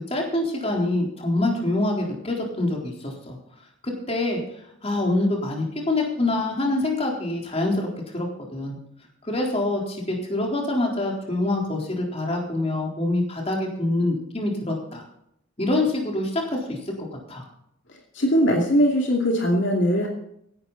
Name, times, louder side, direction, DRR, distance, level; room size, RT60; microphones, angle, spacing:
voice 1, 0.1-3.4 3.8-4.4 4.8-7.9 8.1-8.8 9.2-15.0 15.6-17.4, left 2 dB, 30° left, 0 dB, 3.9 m, -25 dB
voice 2, 17.9-20.1, equal, 60° left, 0 dB, 2.6 m, -21 dB
16.5 x 12.0 x 4.1 m, 0.73 s
head